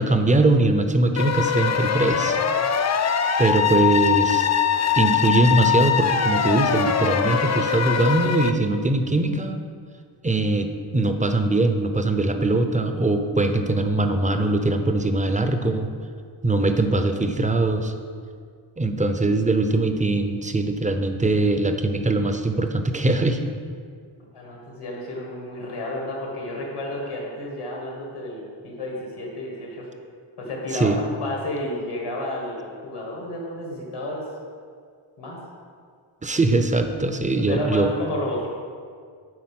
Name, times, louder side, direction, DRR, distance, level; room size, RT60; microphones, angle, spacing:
voice 1, 0.0-2.4 3.4-4.5 5.0-9.6 10.2-15.9 16.4-17.9 18.8-23.4 30.7-31.0 36.2-37.9, right 2 dB, 15° right, 7 dB, 0.5 m, -21 dB
sound 1, 1.2-8.5, left 7 dB, 35° left, 0.4 m, -22 dB
voice 2, 24.3-29.9 30.4-34.2 35.2-35.4 37.5-38.5, left 1 dB, 85° left, -2 dB, 1.8 m, -31 dB
9.5 x 3.9 x 6.0 m, 2.1 s
wide cardioid pair, 90°, 50 cm